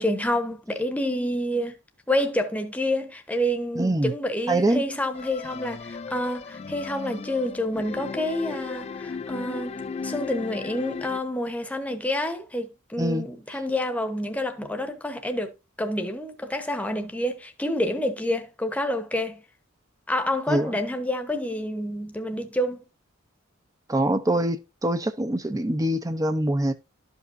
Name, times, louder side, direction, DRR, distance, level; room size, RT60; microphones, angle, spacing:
voice 1, 0.0-1.8 2.1-15.5 15.8-19.4 20.1-22.8, left 1 dB, 5° left, 0.9 m, -28 dB
voice 2, 3.7-4.1 4.5-4.8 13.0-13.3 20.5-20.8 23.9-26.7, right 1 dB, 15° right, 0.5 m, -24 dB
sound 1, 5.1-11.2, left 5 dB, 30° left, 0.4 m, -36 dB
12.5 x 5.3 x 2.6 m
head